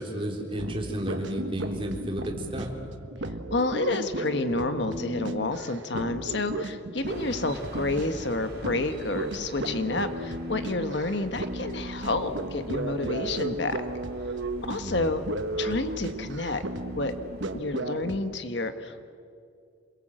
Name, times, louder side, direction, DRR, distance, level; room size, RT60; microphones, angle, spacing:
voice 1, 0.0-2.7 14.8-15.1, equal, 30° right, 1 dB, 3.7 m, -32 dB
sound 1, 0.6-18.3, right 2 dB, 75° right, 1.2 m, -35 dB
voice 2, 3.5-13.8 14.6-15.2 15.6-16.6 17.0-17.1 17.5-19.1, left 2 dB, 65° left, 8 dB, 1.4 m, -29 dB
sound 2, 7.0-17.6, right 1 dB, 55° right, 3.8 m, -45 dB
28.0 x 22.0 x 7.7 m, 2.4 s
head